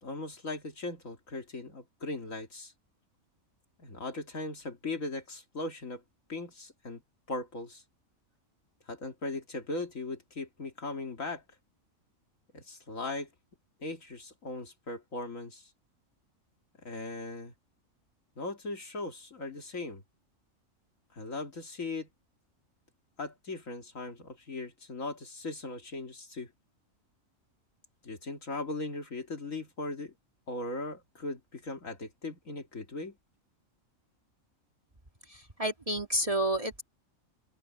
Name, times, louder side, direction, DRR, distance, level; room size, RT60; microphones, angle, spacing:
voice 1, 0.0-2.7 3.8-6.0 6.3-7.0 7.3-7.8 8.9-11.4 12.5-13.3 13.8-15.7 16.8-17.5 18.4-20.0 21.1-22.1 23.2-26.5 28.0-30.1 30.5-33.2, left 2 dB, 70° left, 2.7 m, -38 dB
voice 2, 35.3-36.8, right 1 dB, 25° right, 2.0 m, -30 dB
open air
omnidirectional pair, 1.4 m